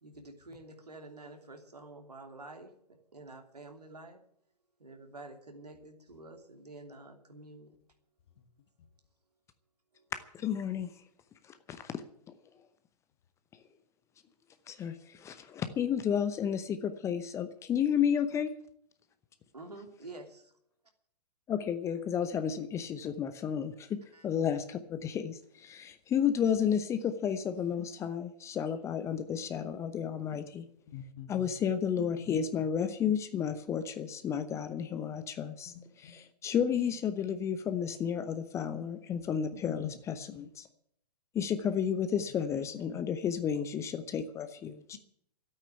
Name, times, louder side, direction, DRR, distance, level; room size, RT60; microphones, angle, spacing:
voice 1, 0.0-4.2 4.8-7.8 9.9-10.1 19.5-20.5 24.1-24.3, right 2 dB, 75° right, 4 dB, 3.0 m, -49 dB
voice 2, 10.3-10.9 11.4-11.9 14.7-18.5 21.5-30.6 31.3-35.7 36.4-40.7 41.3-45.0, left 8 dB, 15° left, 11 dB, 0.8 m, -32 dB
voice 3, 29.9-30.5 30.9-32.4 34.5-34.6 35.1-36.2 39.5-40.5 42.6-43.0, left 7 dB, 40° left, 9 dB, 1.6 m, -49 dB
13.0 x 8.8 x 10.0 m, 0.67 s
figure-of-eight pair, 115°, 20 cm